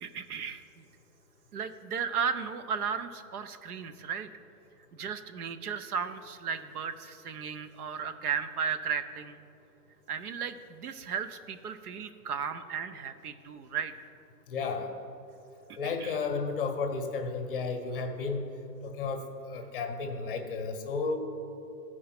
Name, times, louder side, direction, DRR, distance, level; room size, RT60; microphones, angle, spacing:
voice 1, 0.0-0.6 1.5-4.3 4.9-9.4 10.1-13.9 15.8-16.2, right 6 dB, 70° right, 10 dB, 0.7 m, -35 dB
voice 2, 14.5-14.9 15.8-18.4 18.8-19.2 19.5-21.2, left 4 dB, 35° left, 5 dB, 0.8 m, -32 dB
14.0 x 4.6 x 5.9 m, 2.7 s
hypercardioid pair, 165°, 47 cm